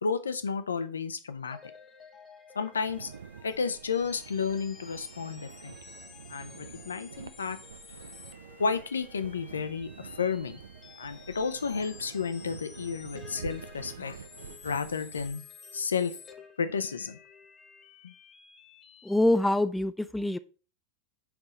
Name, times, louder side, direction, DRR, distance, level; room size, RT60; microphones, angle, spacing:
voice 1, 0.0-1.6 2.5-3.1 3.4-5.8 6.3-7.6 8.6-10.6 11.0-14.2 14.6-15.4 15.7-16.1 16.6-17.2 18.0-18.1, left 5 dB, 70° left, 0.8 m, -32 dB
sound 1, 1.4-19.3, left 6 dB, 25° left, 0.9 m, -52 dB
sound 2, 2.7-15.3, right 6 dB, 65° right, 0.4 m, -47 dB
voice 2, 19.0-20.4, left 1 dB, 5° left, 0.3 m, -25 dB
6.0 x 5.0 x 4.1 m
figure-of-eight pair, 90°, 0 cm